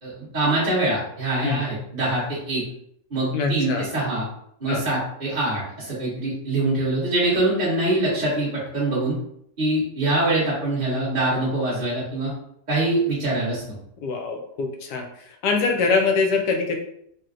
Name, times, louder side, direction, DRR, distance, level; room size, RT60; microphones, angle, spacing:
voice 1, 0.0-2.6 3.1-4.3 4.6-9.2 9.6-12.3 12.7-13.6, right 2 dB, 30° right, -9 dB, 1.0 m, -24 dB
voice 2, 3.3-3.9 4.7-4.8 14.0-15.0 15.4-16.8, left 4 dB, 80° left, 3 dB, 1.2 m, -23 dB
3.9 x 2.1 x 2.4 m, 0.70 s
omnidirectional pair, 1.9 m